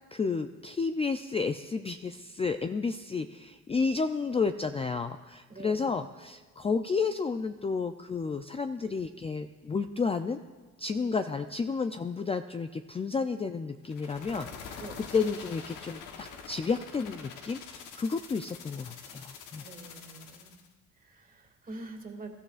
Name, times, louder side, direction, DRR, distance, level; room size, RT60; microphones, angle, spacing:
voice 1, 0.1-10.4 10.8-14.8 15.1-19.6, left 4 dB, 20° left, 8 dB, 0.4 m, -31 dB
voice 2, 5.5-5.9 14.8-15.0 19.6-20.5 20.9-22.3, right 2 dB, 30° right, 3 dB, 2.3 m, -45 dB
sound 1, 13.8-20.7, left 6 dB, 85° left, 1.2 m, -45 dB
22.0 x 12.5 x 2.5 m, 1.3 s
cardioid pair, 90°, 30 cm